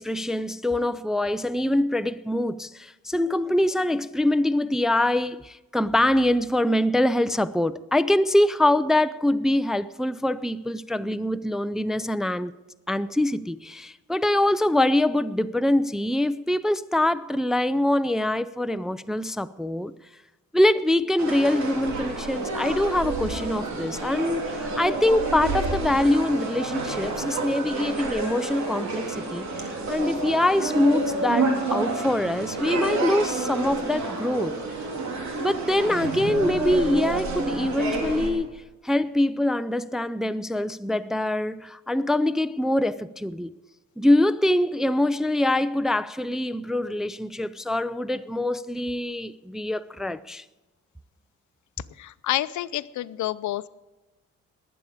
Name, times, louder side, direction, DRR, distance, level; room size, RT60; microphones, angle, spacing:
voice 1, 0.0-12.5 12.9-19.9 20.5-34.6 35.4-43.6 44.0-50.4, left 1 dB, ahead, 0.4 m, -24 dB
sound 1, 21.2-38.3, right 3 dB, 65° right, 3.5 m, -29 dB
voice 2, 52.0-53.7, left 14 dB, 70° left, 0.6 m, -28 dB
20.0 x 8.6 x 5.0 m
cardioid pair, 90°, 30 cm